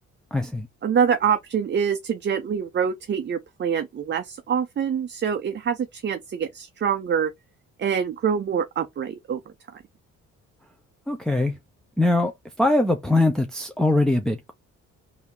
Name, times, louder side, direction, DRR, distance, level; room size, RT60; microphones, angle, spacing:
voice 1, 0.3-0.7 11.1-11.6 12.0-12.3 12.6-14.5, left 2 dB, ahead, 0.7 m, -22 dB
voice 2, 0.8-7.3 7.8-9.4, right 7 dB, 35° right, 0.5 m, -25 dB
3.5 x 2.8 x 4.5 m
cardioid pair, 90°, 30 cm